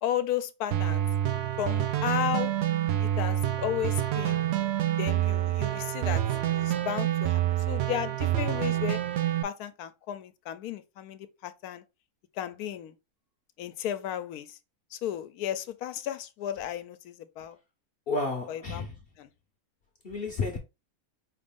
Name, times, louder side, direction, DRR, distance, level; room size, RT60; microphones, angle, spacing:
voice 1, 0.0-1.0 1.6-2.5 3.0-4.4 5.0-6.2 6.5-9.0 9.4-11.8 12.4-13.0 13.6-14.6 14.9-17.6 18.5-18.8 19.2-19.3, left 10 dB, 85° left, 1.1 m, -34 dB
sound 1, 0.7-9.4, right 12 dB, 70° right, 0.6 m, -27 dB
voice 2, 18.1-18.9 20.0-20.6, left 3 dB, 50° left, 0.8 m, -31 dB
5.0 x 2.5 x 3.5 m
omnidirectional pair, 1.6 m